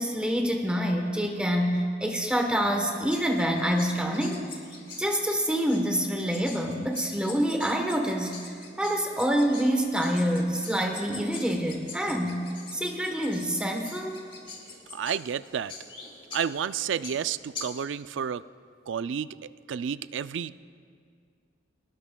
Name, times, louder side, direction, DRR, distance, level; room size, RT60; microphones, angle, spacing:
voice 1, 0.0-4.4 5.0-12.4 12.7-14.2, equal, 5° right, 2 dB, 1.0 m, -27 dB
sound 1, 2.7-17.8, left 3 dB, 30° left, 2.0 m, -45 dB
voice 2, 14.9-15.7 16.3-18.4 18.9-19.3 19.7-20.6, right 7 dB, 75° right, 15 dB, 0.4 m, -30 dB
24.0 x 19.5 x 2.3 m, 2.2 s
head